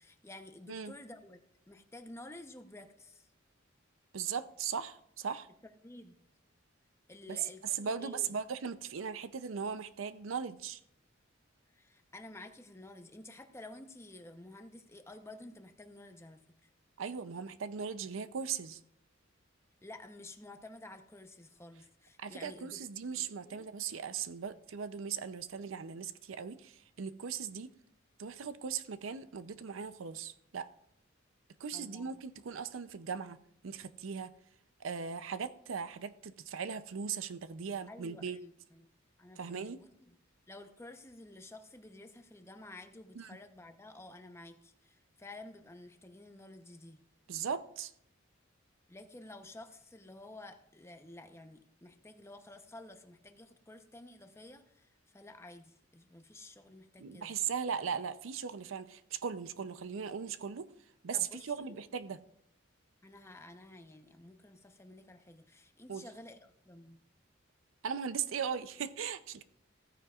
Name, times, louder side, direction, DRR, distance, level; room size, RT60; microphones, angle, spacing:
voice 1, 0.0-1.4 1.7-3.3 5.8-6.1 7.1-8.4 11.7-16.7 19.8-22.8 23.2-23.7 31.7-32.2 37.9-38.9 39.2-40.1 40.5-47.0 48.9-57.3 61.1-61.8 63.0-67.0, left 2 dB, 15° left, 6 dB, 0.8 m, -52 dB
voice 2, 4.1-5.5 7.3-7.4 7.8-10.8 17.0-18.8 22.2-27.7 28.2-30.7 31.6-33.4 33.6-34.3 34.8-38.4 39.4-39.8 43.2-43.3 47.3-47.9 57.0-60.7 61.0-62.2 65.9-66.0 67.8-69.4, right 6 dB, 75° right, 13 dB, 0.5 m, -38 dB
15.5 x 14.0 x 2.4 m, 0.74 s
head